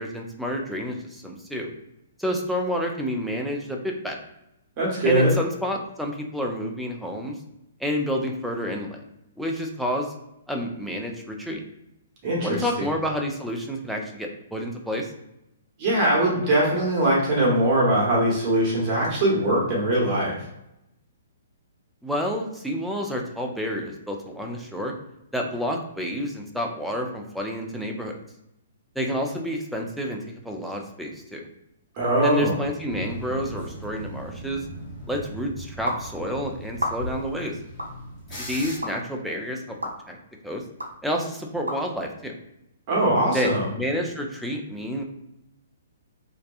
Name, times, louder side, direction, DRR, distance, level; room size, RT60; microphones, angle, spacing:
voice 1, 0.0-1.7 2.2-4.2 5.0-7.4 7.8-9.0 9.4-10.1 10.5-11.6 12.4-15.1 22.0-24.9 25.3-28.1 29.0-31.4 32.2-34.6 35.1-37.6 38.4-39.8 40.1-40.2 40.4-40.6 41.0-42.3 43.3-45.0, equal, ahead, 0 dB, 0.4 m, -29 dB
voice 2, 4.8-5.3 12.2-12.7 15.8-20.4 31.9-32.6 42.9-43.7, right 1 dB, 35° right, -4 dB, 0.9 m, -21 dB
sound 1, 32.9-38.8, right 1 dB, 20° left, 1.0 m, -38 dB
sound 2, 35.9-36.0 36.7-37.2 37.8-37.9 38.8-38.9 39.8-39.9 40.8-40.9 41.7-41.8, equal, 85° right, 0.5 m, -29 dB
2.6 x 2.2 x 2.4 m, 0.85 s
figure-of-eight pair, 120°, 0 cm